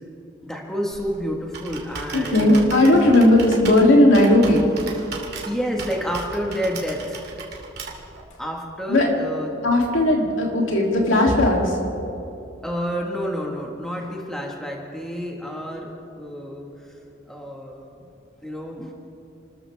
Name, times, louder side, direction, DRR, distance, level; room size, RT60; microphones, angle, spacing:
voice 1, 0.4-2.6 5.4-7.2 8.4-9.6 12.6-16.7 17.3-17.9 18.4-18.9, equal, 5° left, -1 dB, 1.6 m, -29 dB
Computer keyboard, 0.9-8.2, right 4 dB, 55° right, 2.6 m, -36 dB
voice 2, 2.1-4.6 8.9-9.1 9.6-11.8, left 1 dB, 75° left, -1 dB, 3.0 m, -16 dB
29.5 x 14.0 x 3.5 m, 2.8 s
head